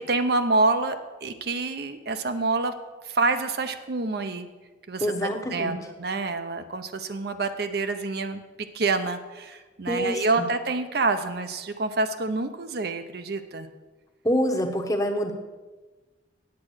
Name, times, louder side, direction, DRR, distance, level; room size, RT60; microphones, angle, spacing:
voice 1, 0.0-2.7 3.0-4.5 4.9-8.4 8.7-13.7, right 3 dB, 55° right, 8 dB, 0.6 m, -27 dB
voice 2, 5.0-5.8 9.9-10.4 14.2-15.3, equal, 20° left, 3 dB, 1.0 m, -26 dB
8.7 x 8.4 x 6.3 m, 1.2 s
head